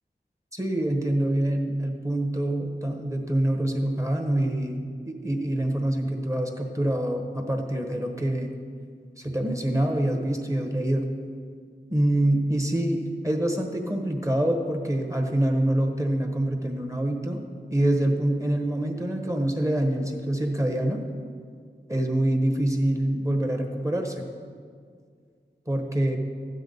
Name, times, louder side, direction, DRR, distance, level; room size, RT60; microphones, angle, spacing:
voice 1, 0.5-8.5 9.2-11.1 11.9-17.4 17.7-21.0 21.9-24.2 25.7-26.2, right 1 dB, 15° right, 3 dB, 1.2 m, -25 dB
13.0 x 9.1 x 4.0 m, 2.1 s
wide cardioid pair, 75°, 18 cm